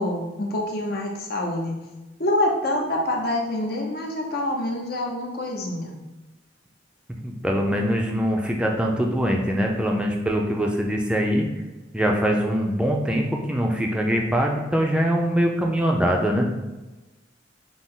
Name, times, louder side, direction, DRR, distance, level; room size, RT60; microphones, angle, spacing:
voice 1, 0.0-1.8 2.2-5.9, left 1 dB, 55° left, -1 dB, 0.7 m, -26 dB
voice 2, 7.2-11.5 11.9-16.5, equal, 5° right, 0 dB, 0.5 m, -23 dB
6.1 x 2.1 x 3.7 m, 1.1 s
head